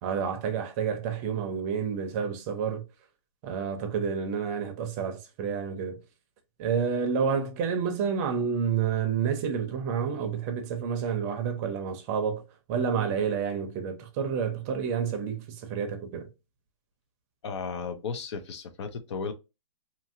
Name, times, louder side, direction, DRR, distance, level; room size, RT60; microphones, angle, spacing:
voice 1, 0.0-2.8 3.4-6.0 6.6-12.4 12.7-16.3, right 6 dB, 30° right, 0.6 m, -29 dB
voice 2, 17.4-19.3, left 5 dB, 55° left, 0.6 m, -34 dB
2.8 x 2.7 x 2.5 m
hypercardioid pair, 150°, 18 cm